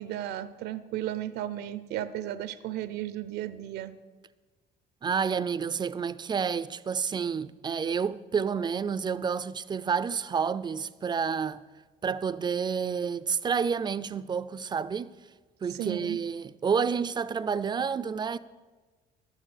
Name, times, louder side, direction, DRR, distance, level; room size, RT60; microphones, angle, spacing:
voice 1, 0.0-3.9 15.7-16.2, right 12 dB, 80° right, 0.7 m, -34 dB
voice 2, 5.0-11.6 12.0-15.1 15.6-18.4, right 6 dB, 25° right, 0.4 m, -29 dB
11.5 x 9.0 x 6.5 m
cardioid pair, 110°, 17 cm